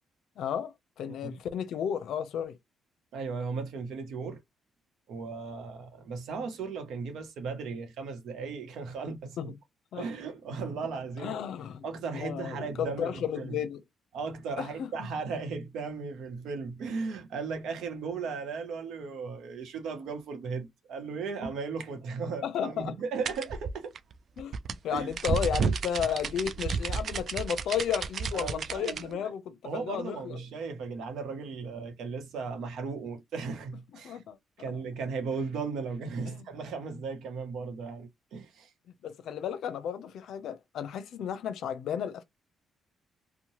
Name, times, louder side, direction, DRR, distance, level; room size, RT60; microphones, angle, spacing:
voice 1, 0.4-2.6 9.4-9.5 9.9-10.1 11.2-11.9 12.1-13.8 14.6-14.9 22.4-23.0 24.4-24.5 24.8-30.4 34.0-34.4 36.3-36.4 39.0-42.2, left 8 dB, 75° left, 0.5 m, -33 dB
voice 2, 3.1-4.4 5.1-9.4 9.9-11.4 11.8-13.6 14.1-23.9 24.9-25.1 28.3-29.2 29.6-34.2 34.6-38.7, right 5 dB, 75° right, 0.8 m, -36 dB
sound 1, 23.2-29.0, right 5 dB, 55° right, 0.3 m, -32 dB
2.7 x 2.1 x 3.0 m
cardioid pair, 90°, 0 cm